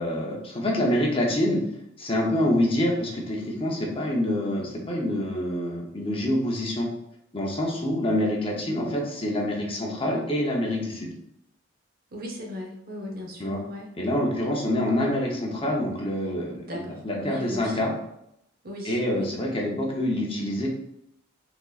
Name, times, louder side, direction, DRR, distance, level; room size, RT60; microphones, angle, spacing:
voice 1, 0.0-1.6 2.0-6.9 7.3-11.1 13.4-13.6 14.0-16.5 17.0-17.9 18.8-20.7, left 1 dB, 30° left, -1 dB, 0.8 m, -26 dB
voice 2, 12.1-13.9 16.5-17.8 18.6-19.3, left 1 dB, 50° right, 1 dB, 0.9 m, -37 dB
4.4 x 4.0 x 2.4 m, 0.78 s
head